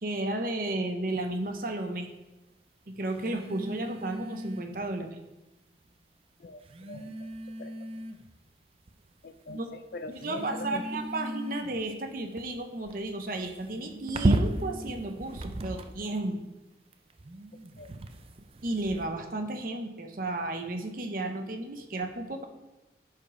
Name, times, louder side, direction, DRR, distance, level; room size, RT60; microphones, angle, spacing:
voice 1, 0.0-2.1 2.9-5.1 9.5-9.7 10.1-16.4 18.6-22.4, right 2 dB, 50° right, 5 dB, 0.8 m, -33 dB
sound 1, 1.1-1.3 3.1-4.9 5.9-6.0 6.6-8.4 8.9-9.4 10.1-16.2 16.9-19.1, right 1 dB, 30° right, 0.4 m, -35 dB
voice 2, 6.4-7.3 7.6-7.9 9.2-9.6 9.9-10.8 17.8-17.9, left 3 dB, 55° left, 10 dB, 0.4 m, -43 dB
7.5 x 5.0 x 4.8 m, 1.0 s
head